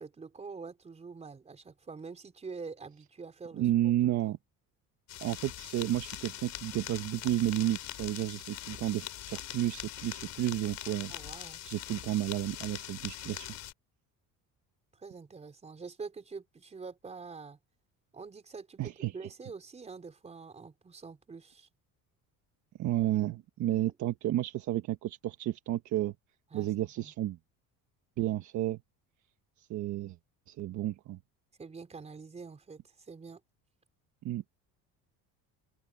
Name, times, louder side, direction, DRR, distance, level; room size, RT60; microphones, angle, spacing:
voice 1, 0.0-3.7 4.0-4.3 11.1-11.6 14.9-17.6 18.1-21.7 26.5-27.1 31.6-33.4, right 4 dB, 20° right, 4.6 m, -46 dB
voice 2, 3.6-4.4 5.2-11.1 11.6-13.5 18.8-19.1 22.8-26.1 26.5-27.4 28.2-28.8 29.6-30.2 30.5-31.2 34.2-34.4, right 14 dB, 50° right, 1.3 m, -31 dB
sound 1, 5.1-13.7, left 13 dB, 50° left, 5.7 m, -42 dB
open air
cardioid pair, 160°, 36 cm